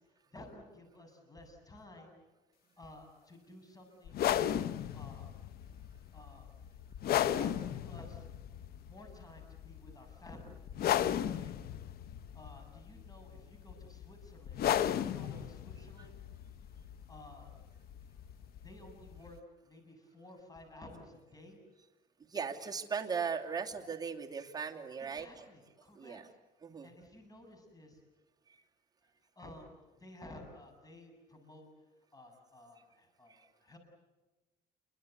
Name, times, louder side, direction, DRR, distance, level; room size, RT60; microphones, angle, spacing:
voice 1, 0.0-2.1 2.8-4.2 4.9-5.4 6.1-6.5 7.4-8.3 8.8-10.6 11.3-11.6 12.3-14.6 15.0-16.1 17.1-17.5 18.6-21.6 25.0-26.4 26.8-28.0 29.4-33.8, left 1 dB, 20° left, 5 dB, 7.5 m, -54 dB
sound 1, 4.1-19.4, left 10 dB, 65° left, 1.0 m, -36 dB
voice 2, 22.3-25.4 25.9-26.3 26.6-26.9 28.5-28.6 33.3-33.4, right 6 dB, 25° right, 1 dB, 2.8 m, -38 dB
28.5 x 24.0 x 8.1 m, 1.1 s
cardioid pair, 110°, 17 cm